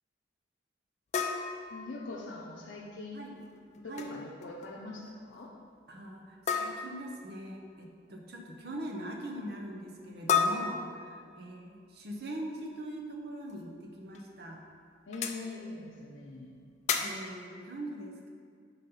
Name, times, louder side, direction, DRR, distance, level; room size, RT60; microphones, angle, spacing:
sound 1, 1.1-2.5 3.7-4.1 4.4-4.7 5.0-5.1 6.5-7.1 10.3-11.5 13.5-13.6 14.1-14.2 15.1-15.4 16.9-17.3, left 6 dB, 40° left, 0.4 m, -32 dB
voice 1, 1.7-3.2 3.8-5.5 15.1-16.5, left 2 dB, 90° left, -4 dB, 0.6 m, -43 dB
voice 2, 3.8-4.2 5.9-14.6 16.9-18.3, right 1 dB, 55° right, 1 dB, 0.8 m, -42 dB
5.3 x 4.1 x 5.6 m, 2.1 s
head